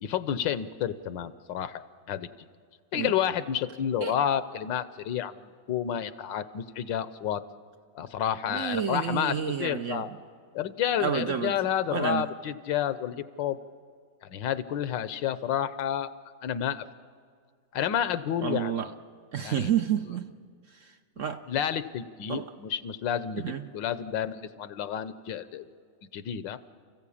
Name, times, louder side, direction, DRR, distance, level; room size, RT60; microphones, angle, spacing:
voice 1, 0.0-2.3 2.9-7.4 7.9-10.1 10.5-13.6 14.2-16.1 16.4-16.8 17.7-18.9 19.4-19.7 21.5-25.7 26.1-26.6, left 9 dB, 90° left, 1.5 m, -30 dB
voice 2, 8.5-10.1 11.0-11.5 11.9-12.3 18.4-18.9 19.3-20.3 20.7-21.4 22.3-22.5 23.4-23.7, right 8 dB, 60° right, 0.9 m, -30 dB
29.5 x 15.0 x 8.6 m
omnidirectional pair, 2.0 m